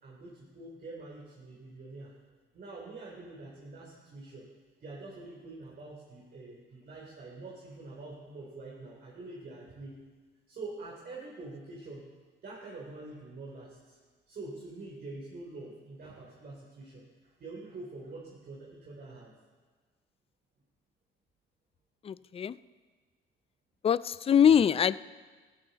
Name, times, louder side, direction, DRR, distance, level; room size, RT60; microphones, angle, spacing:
voice 1, 0.0-2.1 2.5-4.5 4.8-9.9 10.5-12.0 12.4-14.0 14.3-17.0 17.4-19.3, right 2 dB, 50° right, -3 dB, 3.2 m, -45 dB
voice 2, 22.0-22.6 23.8-25.0, left 8 dB, 30° left, 17 dB, 0.4 m, -23 dB
17.0 x 16.0 x 4.1 m, 1.4 s
cardioid pair, 105°, 20 cm